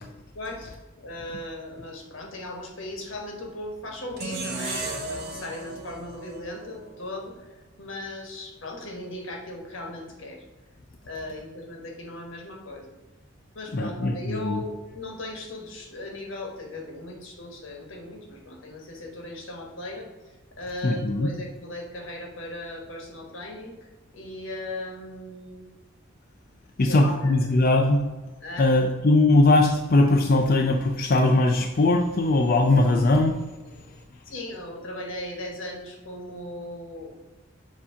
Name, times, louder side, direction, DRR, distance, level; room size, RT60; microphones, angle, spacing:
voice 1, 0.3-10.4 11.1-12.9 13.5-23.8 24.1-25.7 26.8-27.5 28.4-28.7 33.6-33.7 34.2-37.1, left 1 dB, 80° left, 1 dB, 1.4 m, -38 dB
sound 1, 4.2-7.3, right 3 dB, 55° right, 1.2 m, -35 dB
voice 2, 13.7-14.6 20.8-21.3 26.8-28.0 28.6-33.4, left 2 dB, 45° left, 2 dB, 0.5 m, -20 dB
7.3 x 2.8 x 5.6 m, 1.2 s
head